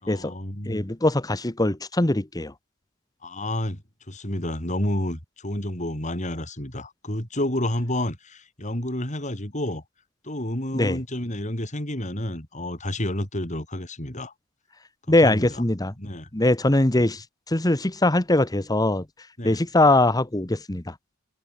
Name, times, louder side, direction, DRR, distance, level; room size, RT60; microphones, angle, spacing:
voice 1, 0.0-0.9 3.2-3.8 4.1-9.8 10.2-14.3 15.1-15.6 16.0-16.3 19.4-19.6, left 1 dB, 35° left, 5.9 m, -30 dB
voice 2, 0.7-2.5 10.7-11.0 15.1-15.9 16.3-19.0 19.4-20.9, left 2 dB, 20° left, 1.1 m, -21 dB
head